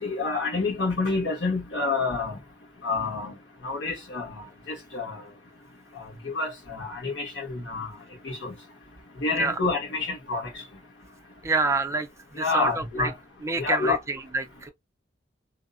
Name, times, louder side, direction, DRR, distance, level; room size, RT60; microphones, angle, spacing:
voice 1, 0.0-2.4 2.8-3.4 3.6-5.2 6.2-7.9 8.2-8.5 9.2-10.5 12.3-13.1 13.6-14.0, left 3 dB, 60° left, 1.3 m, -28 dB
voice 2, 11.4-13.1 13.4-14.7, right 3 dB, 15° right, 0.3 m, -28 dB
2.7 x 2.0 x 2.4 m
head